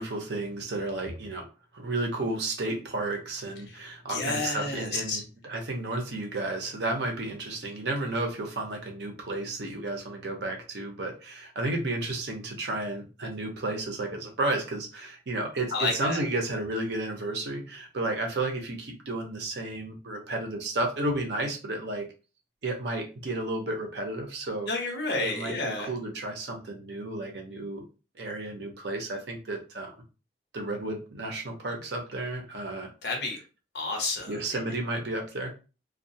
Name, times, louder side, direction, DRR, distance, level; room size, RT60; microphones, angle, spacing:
voice 1, 0.0-1.4 1.7-22.1 22.6-24.7 25.2-27.9 28.2-30.0 30.5-32.9 34.3-35.5, right 2 dB, 70° right, 2 dB, 0.7 m, -32 dB
voice 2, 4.0-5.2 15.7-16.2 24.7-25.9 33.0-33.4 33.7-34.6, left 3 dB, 70° left, 2 dB, 0.8 m, -30 dB
2.3 x 2.3 x 2.7 m, 0.33 s
head